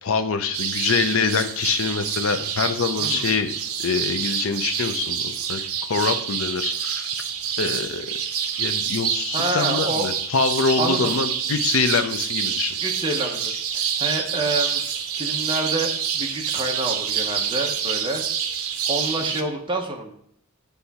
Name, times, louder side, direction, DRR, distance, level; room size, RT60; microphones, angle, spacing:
voice 1, 0.0-3.5 3.8-5.6 5.9-7.1 7.6-8.1 8.6-12.8, left 5 dB, 65° left, 9 dB, 0.6 m, -25 dB
sound 1, 0.5-19.4, right 8 dB, 75° right, 0.6 m, -27 dB
voice 2, 9.3-10.1 10.8-11.1 12.8-18.2 18.9-20.1, right 2 dB, 20° right, 2 dB, 0.9 m, -28 dB
9.6 x 3.4 x 4.2 m, 0.69 s
head